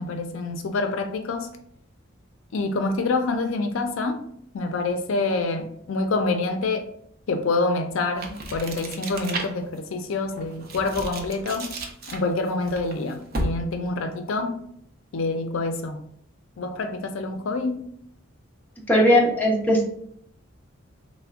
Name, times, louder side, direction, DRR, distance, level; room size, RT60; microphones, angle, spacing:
voice 1, 0.0-1.5 2.5-4.2 4.5-6.9 7.3-11.7 12.1-14.6 15.1-16.1 16.6-17.8, left 3 dB, 70° left, 6 dB, 0.4 m, -26 dB
sound 1, 8.1-9.8 10.3-13.8, right 2 dB, 50° right, 0.5 m, -33 dB
voice 2, 18.9-19.8, equal, 10° left, -2 dB, 0.5 m, -18 dB
3.3 x 2.1 x 3.6 m, 0.67 s
head